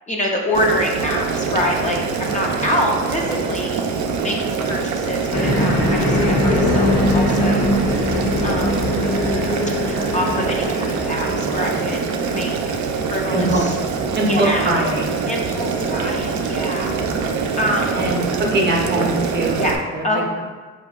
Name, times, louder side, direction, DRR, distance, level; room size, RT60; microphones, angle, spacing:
voice 1, 0.1-3.8 4.2-7.7 8.4-8.9 9.8-12.0 12.3-12.8 13.1-13.7 14.3-14.8 15.3-16.9 17.6-18.1 19.6-20.3, left 1 dB, 25° left, -1 dB, 0.4 m, -25 dB
Boiling, 0.5-19.8, right 5 dB, 70° right, 0.5 m, -24 dB
sound 1, 5.3-12.3, left 1 dB, 85° left, 1.1 m, -21 dB
voice 2, 13.3-13.7 14.1-15.2 16.9-17.2 17.9-19.6 19.9-20.4, right 1 dB, 35° right, -1 dB, 0.7 m, -23 dB
4.6 x 2.6 x 2.3 m, 1.4 s
cardioid pair, 90°, 30 cm